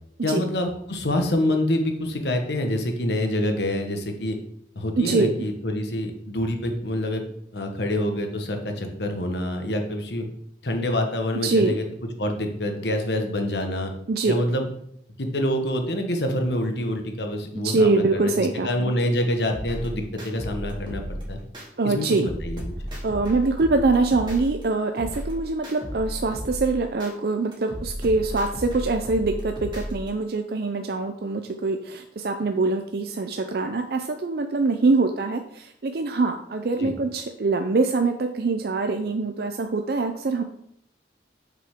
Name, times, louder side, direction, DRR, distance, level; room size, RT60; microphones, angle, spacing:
voice 1, 0.2-4.4 4.7-7.2 7.5-10.3 10.6-11.8 12.2-13.9 14.2-14.7 15.2-21.4 21.8-22.7 36.8-36.9, left 1 dB, 75° left, 4 dB, 1.2 m, -26 dB
voice 2, 5.0-5.3 11.4-11.7 14.1-14.4 17.6-18.9 21.8-22.3 23.0-40.4, right 3 dB, 60° right, 6 dB, 0.5 m, -24 dB
sound 1, 19.5-21.7 22.1-24.6 25.0-27.1 27.5-30.1, equal, 25° right, 2.2 m, -34 dB
7.4 x 6.0 x 3.6 m, 0.71 s
head